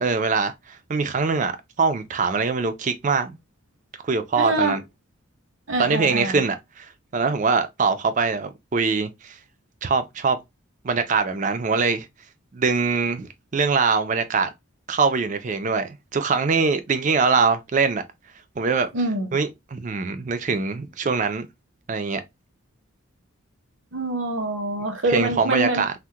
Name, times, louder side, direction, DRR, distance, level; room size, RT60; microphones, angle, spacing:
voice 1, 0.0-1.5 1.8-3.4 4.0-4.8 5.8-9.4 9.8-10.4 10.8-12.1 12.5-14.5 14.9-18.0 18.6-18.9 19.3-21.5 21.9-22.2 25.1-25.9, right 4 dB, 35° right, 0.4 m, -23 dB
voice 2, 4.4-4.8 5.7-6.4 18.9-19.4 23.9-25.8, right 2 dB, 60° right, 0.8 m, -25 dB
3.5 x 2.1 x 2.7 m
head